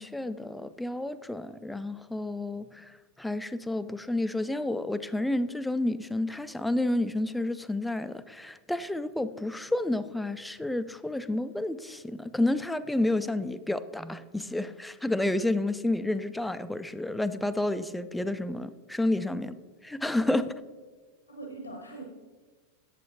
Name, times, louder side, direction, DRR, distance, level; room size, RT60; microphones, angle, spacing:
voice 1, 0.0-19.5 19.8-20.5, left 1 dB, 5° left, 12 dB, 0.3 m, -30 dB
voice 2, 21.3-22.0, right 2 dB, 80° left, 1 dB, 1.1 m, -42 dB
8.1 x 7.7 x 2.8 m, 1.4 s
figure-of-eight pair, 90°, 0 cm